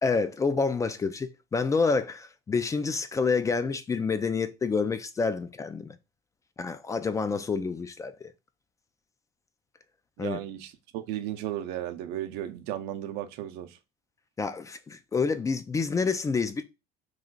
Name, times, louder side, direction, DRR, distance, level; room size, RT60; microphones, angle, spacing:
voice 1, 0.0-6.0 6.6-8.3 10.2-10.4 14.4-16.6, left 4 dB, 20° left, 0.3 m, -28 dB
voice 2, 10.2-13.8, right 12 dB, 80° right, 0.6 m, -35 dB
3.1 x 2.4 x 3.7 m
cardioid pair, 120°, 17 cm